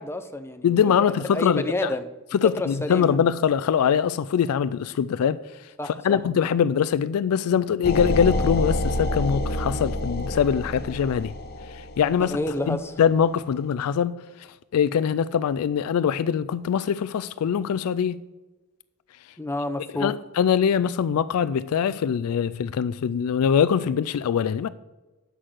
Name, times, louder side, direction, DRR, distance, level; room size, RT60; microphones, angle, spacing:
voice 1, 0.0-0.9 1.3-2.1 2.4-3.2 5.8-6.2 12.2-13.0 19.4-20.1, left 1 dB, 10° left, 0.6 m, -29 dB
voice 2, 0.6-1.6 2.4-5.7 6.0-11.3 11.7-12.3 12.7-14.5 14.7-18.2 20.0-24.7, left 7 dB, 75° left, 0.3 m, -23 dB
sound 1, 7.8-12.6, left 1 dB, 45° left, 0.8 m, -28 dB
8.0 x 6.4 x 7.6 m
head